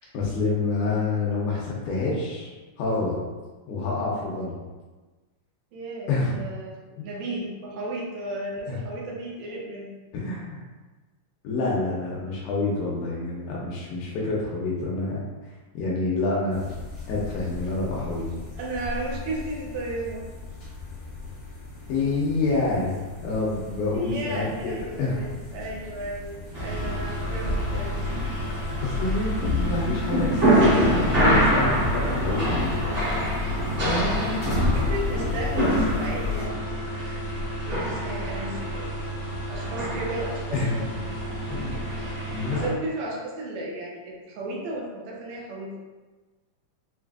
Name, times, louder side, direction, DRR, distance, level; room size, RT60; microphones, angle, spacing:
voice 1, 0.1-2.5 2.8-3.2 3.7-4.6 6.1-6.3 8.7-8.8 10.1-10.6 11.4-16.6 17.1-18.3 21.9-25.3 28.8-32.9 33.8-34.4 40.5-40.8 41.6-41.7 42.3-42.7, left 3 dB, 80° left, -4 dB, 2.1 m, -27 dB
voice 2, 5.7-6.7 7.0-9.9 18.6-20.3 23.9-28.0 34.5-36.6 37.6-38.9 39.5-40.8 42.5-45.7, right 2 dB, 75° right, -3 dB, 1.7 m, -34 dB
sound 1, 16.5-36.5, left 5 dB, 45° left, 1.0 m, -34 dB
sound 2, 26.5-42.7, right 1 dB, 45° right, 1.0 m, -26 dB
5.7 x 2.4 x 2.3 m, 1.3 s
omnidirectional pair, 3.7 m